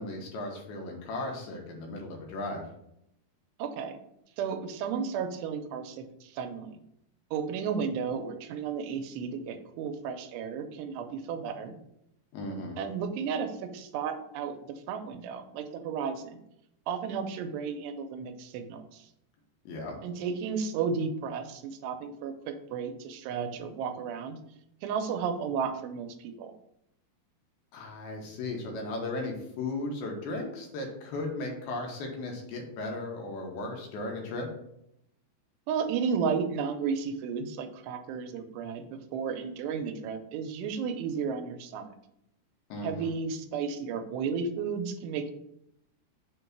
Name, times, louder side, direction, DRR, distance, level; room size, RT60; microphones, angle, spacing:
voice 1, 0.0-2.7 12.3-12.8 19.7-19.9 27.7-34.5 42.7-43.1, left 2 dB, 75° left, 0 dB, 3.0 m, -36 dB
voice 2, 3.6-4.0 4.4-6.8 7.3-11.8 12.8-16.4 16.9-19.1 20.0-24.4 24.8-26.5 35.7-41.9 42.8-45.3, right 6 dB, 85° right, 7 dB, 2.8 m, -33 dB
6.8 x 3.0 x 5.9 m, 0.78 s
omnidirectional pair, 4.7 m